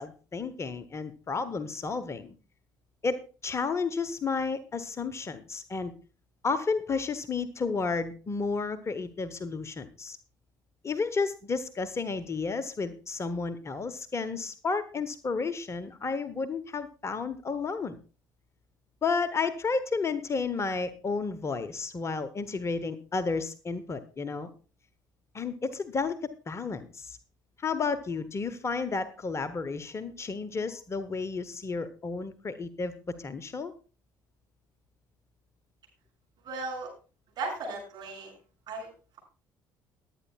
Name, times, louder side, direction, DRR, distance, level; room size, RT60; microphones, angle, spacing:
voice 1, 0.0-2.3 3.0-5.9 6.4-10.2 10.8-18.0 19.0-24.5 25.3-27.2 27.6-32.9 33.2-33.7, left 4 dB, 25° left, 13 dB, 0.9 m, -32 dB
voice 2, 36.4-36.9 37.4-38.3 38.7-38.9, right 3 dB, 45° right, -2 dB, 7.1 m, -36 dB
21.0 x 9.2 x 2.3 m, 0.35 s
figure-of-eight pair, 55°, 10 cm